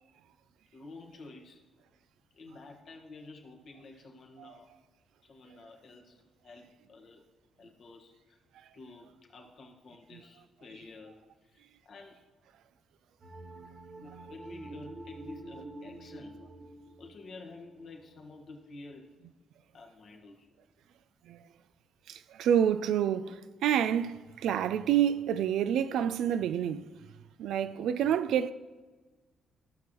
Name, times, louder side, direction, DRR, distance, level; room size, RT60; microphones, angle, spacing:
voice 1, 0.7-1.6 2.3-4.7 5.2-7.2 7.6-8.4 8.7-12.2 13.9-16.4 17.0-19.2 19.7-20.5, left 3 dB, 60° left, 1.5 m, -50 dB
sound 1, 13.2-18.5, right 2 dB, 50° right, 1.2 m, -47 dB
voice 2, 22.1-26.8 27.4-28.5, right 9 dB, 75° right, 0.3 m, -28 dB
15.0 x 6.1 x 3.0 m
hypercardioid pair, 50°, 0 cm